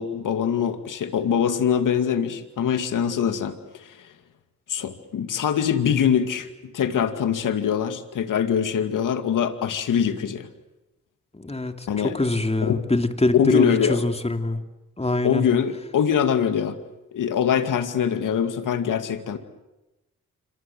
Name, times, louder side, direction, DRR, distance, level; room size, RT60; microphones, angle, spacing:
voice 1, 0.0-3.9 4.7-6.5 6.7-10.5 11.9-12.2 12.6-12.8 13.3-14.0 15.2-16.8 17.1-19.4, left 8 dB, 85° left, 9 dB, 2.3 m, -23 dB
voice 2, 11.3-14.6 15.0-15.5, left 2 dB, 20° left, 6 dB, 3.0 m, -24 dB
27.5 x 25.0 x 7.8 m, 0.99 s
cardioid pair, 65°, 31 cm